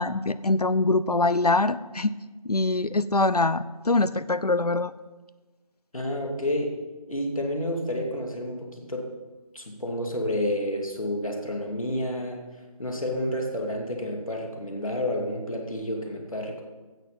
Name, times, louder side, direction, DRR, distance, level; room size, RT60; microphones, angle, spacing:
voice 1, 0.0-2.1 2.4-4.9, left 2 dB, 85° left, 15 dB, 0.7 m, -23 dB
voice 2, 5.9-6.7 7.1-9.1 9.5-12.5 12.8-16.6, left 1 dB, 60° left, 1 dB, 2.6 m, -30 dB
16.0 x 6.6 x 5.6 m, 1.2 s
figure-of-eight pair, 165°, 19 cm